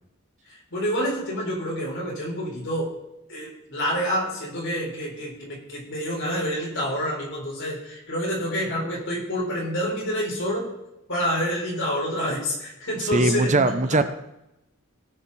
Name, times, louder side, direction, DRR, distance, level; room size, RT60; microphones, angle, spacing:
voice 1, 0.7-2.9 3.3-10.7 11.1-13.7, equal, 60° left, -3 dB, 4.4 m, -28 dB
voice 2, 13.1-14.1, right 2 dB, 35° right, 10 dB, 0.7 m, -20 dB
17.5 x 6.5 x 4.2 m, 0.88 s
head